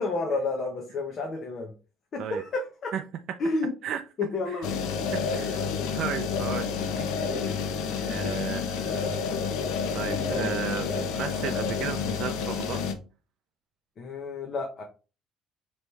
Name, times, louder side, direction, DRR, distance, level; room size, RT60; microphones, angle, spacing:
voice 1, 0.0-1.7 2.1-2.9 3.4-3.7 4.2-5.0 10.3-10.5 14.0-14.8, left 3 dB, 35° left, 0.8 m, -30 dB
sound 1, 4.6-12.9, left 6 dB, 80° left, 0.8 m, -29 dB
voice 2, 5.1-7.1 7.4-9.2 9.9-12.9, right 8 dB, 50° right, 0.4 m, -35 dB
5.0 x 3.1 x 3.2 m
cardioid pair, 155°, 0 cm